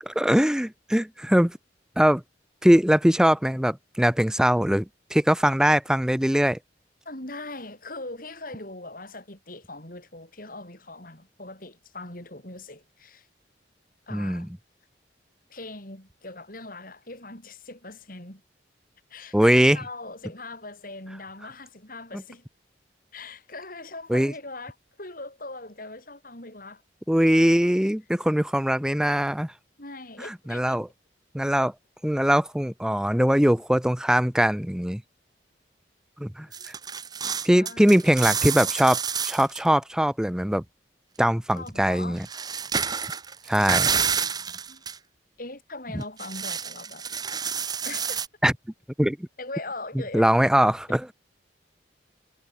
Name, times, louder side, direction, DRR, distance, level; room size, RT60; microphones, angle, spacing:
voice 1, 0.1-1.6 2.0-2.2 2.6-6.6 14.1-14.5 19.3-19.8 24.1-24.3 27.1-29.5 30.2-30.9 31.3-31.7 32.0-35.0 36.2-36.7 37.4-40.6 41.2-42.3 43.5-43.9 45.9-46.0 48.4-48.5 49.0-49.3 50.1-51.1, equal, 5° right, 0.6 m, -21 dB
voice 2, 7.1-13.3 14.1-14.5 15.5-18.4 19.1-22.4 23.1-26.8 29.8-30.9 36.6-36.7 37.2-37.9 41.5-42.2 44.1-44.3 44.7-44.8 45.4-47.0 47.8-48.2 49.4-50.2, left 2 dB, 50° left, 7.0 m, -40 dB
sound 1, 36.5-39.6 41.5-41.6 42.2-45.0 46.0-48.3, right 6 dB, 20° right, 1.0 m, -29 dB
head